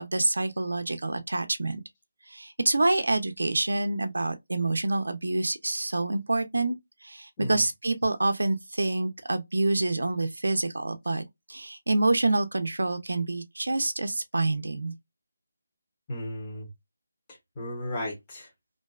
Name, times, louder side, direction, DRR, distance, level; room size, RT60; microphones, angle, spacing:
voice 1, 0.0-1.8 2.3-6.8 7.0-14.9, right 2 dB, 85° right, 0.4 m, -27 dB
voice 2, 16.1-16.7 17.3-18.5, left 1 dB, 20° left, 0.9 m, -35 dB
2.5 x 2.1 x 2.3 m
figure-of-eight pair, 165°, 0 cm